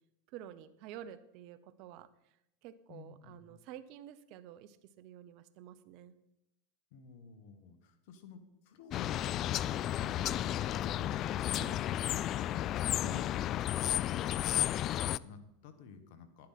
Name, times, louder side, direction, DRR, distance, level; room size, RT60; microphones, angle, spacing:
voice 1, 0.3-2.4 2.6-6.1 11.5-11.8 13.0-13.3, right 11 dB, 55° right, 15 dB, 0.8 m, -50 dB
voice 2, 2.9-3.5 6.9-9.2 14.9-16.5, left 5 dB, 60° left, 9 dB, 1.6 m, -53 dB
sound 1, 8.9-15.2, left 12 dB, 40° left, 0.3 m, -33 dB
11.5 x 10.5 x 4.2 m, 0.85 s
hypercardioid pair, 105°, 0 cm